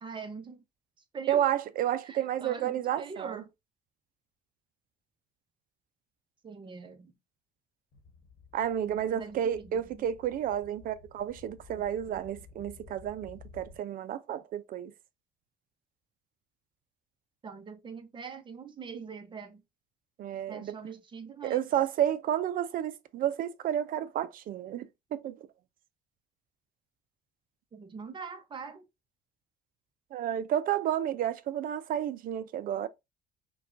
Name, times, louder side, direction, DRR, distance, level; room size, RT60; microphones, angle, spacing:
voice 1, 0.0-0.6 1.1-1.4 2.0-3.5 6.4-7.1 8.8-10.0 17.4-19.6 20.5-21.6 27.7-28.9, right 5 dB, 30° right, 0.7 m, -43 dB
voice 2, 1.3-3.4 8.5-14.9 20.2-20.7 21.4-25.4 30.1-32.9, right 10 dB, 55° right, 0.5 m, -31 dB
sound 1, 7.9-13.8, left 5 dB, 80° left, 1.2 m, -54 dB
5.2 x 2.3 x 2.5 m
cardioid pair, 110°, 17 cm